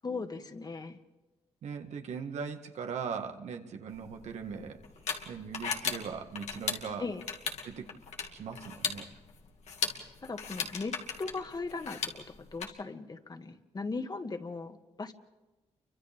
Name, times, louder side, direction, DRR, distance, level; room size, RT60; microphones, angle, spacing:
voice 1, 0.0-1.0 7.0-7.2 10.2-12.2 12.5-15.1, left 3 dB, 35° left, 7 dB, 1.8 m, -38 dB
voice 2, 1.6-4.8 5.3-7.0 7.6-7.9 8.3-9.1, right 6 dB, 85° right, 5 dB, 1.9 m, -39 dB
sound 1, 3.9-12.6, left 6 dB, 90° left, 2.4 m, -38 dB
30.0 x 24.5 x 3.6 m, 1.1 s
cardioid pair, 85°, 11 cm